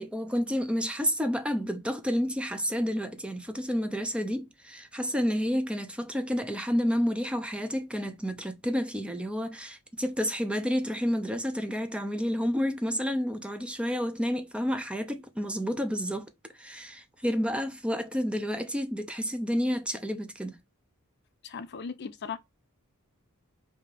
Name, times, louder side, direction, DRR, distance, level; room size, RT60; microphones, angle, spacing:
voice 1, 0.0-16.3 16.6-20.6, equal, 5° right, 0.5 m, -30 dB
voice 2, 21.4-22.4, left 5 dB, 50° left, 0.5 m, -37 dB
5.0 x 2.8 x 3.4 m
head